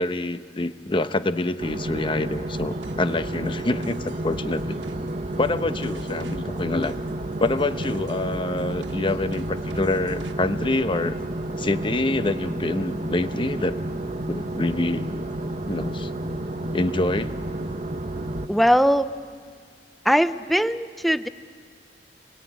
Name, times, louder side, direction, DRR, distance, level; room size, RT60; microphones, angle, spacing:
voice 1, 0.0-4.0 4.2-4.8 5.4-6.9 7.4-11.2 11.6-13.8 14.3-15.1 15.7-16.1 16.7-17.4, left 2 dB, 30° left, 11 dB, 0.9 m, -26 dB
sound 1, 1.6-18.5, right 1 dB, 40° right, 1.0 m, -31 dB
sound 2, 2.3-10.3, right 1 dB, 90° right, 1.6 m, -46 dB
voice 2, 18.5-19.1 20.0-21.3, equal, ahead, 12 dB, 0.6 m, -20 dB
27.5 x 21.5 x 9.3 m, 2.1 s
head